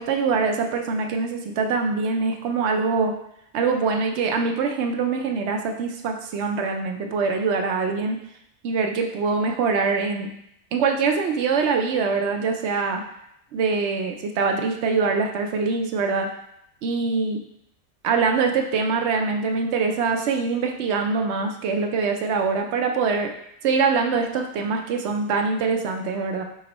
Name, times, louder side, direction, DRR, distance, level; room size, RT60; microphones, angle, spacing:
voice 1, 0.0-3.2 3.5-8.2 8.6-10.3 10.7-13.0 13.5-16.3 16.8-17.4 18.0-23.3 23.6-26.4, right 4 dB, 70° right, 4 dB, 0.8 m, -23 dB
5.1 x 3.0 x 3.0 m, 0.76 s
omnidirectional pair, 1.3 m